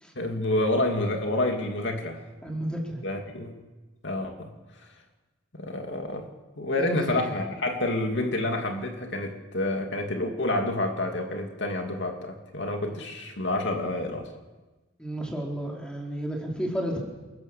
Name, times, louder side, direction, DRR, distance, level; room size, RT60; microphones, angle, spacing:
voice 1, 0.1-2.2 3.0-3.5 4.0-4.5 5.5-6.2 6.6-14.3, left 1 dB, 60° left, 3 dB, 2.8 m, -28 dB
voice 2, 2.4-3.0 6.8-7.3 15.0-17.0, equal, 5° left, -1 dB, 4.1 m, -32 dB
28.5 x 18.5 x 7.5 m, 1.2 s
head